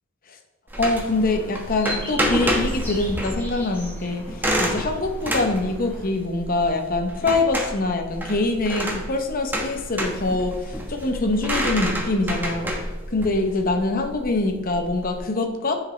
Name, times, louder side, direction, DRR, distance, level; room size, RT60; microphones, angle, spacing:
sound 1, 0.7-15.2, equal, 10° right, 1.1 m, -29 dB
voice 1, 0.8-12.7 13.1-15.8, left 2 dB, 45° left, 4 dB, 0.8 m, -24 dB
sound 2, 0.9-6.1, left 1 dB, 10° left, 1.8 m, -39 dB
9.2 x 5.0 x 3.2 m, 1.0 s
head